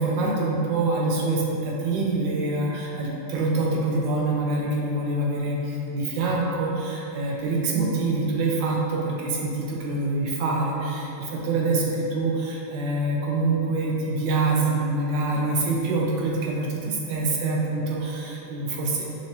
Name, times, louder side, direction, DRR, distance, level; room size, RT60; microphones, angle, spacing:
voice 1, 0.0-19.1, right 2 dB, 75° right, -2 dB, 1.1 m, -25 dB
6.4 x 3.1 x 2.7 m, 2.9 s
omnidirectional pair, 2.4 m